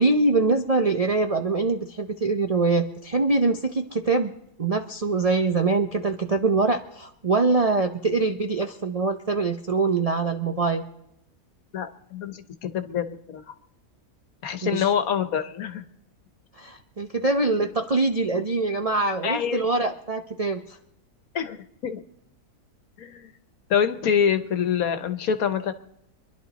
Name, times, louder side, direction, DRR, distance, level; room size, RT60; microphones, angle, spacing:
voice 1, 0.0-4.3 4.6-10.8 14.7-14.9 16.6-20.8, right 3 dB, 50° right, 5 dB, 0.4 m, -23 dB
voice 2, 11.7-13.5 14.4-15.8 19.2-19.6 21.3-21.6 21.8-22.0 23.0-23.3 23.7-25.7, left 7 dB, 65° left, 9 dB, 1.4 m, -26 dB
25.0 x 11.0 x 4.1 m, 0.80 s
omnidirectional pair, 1.7 m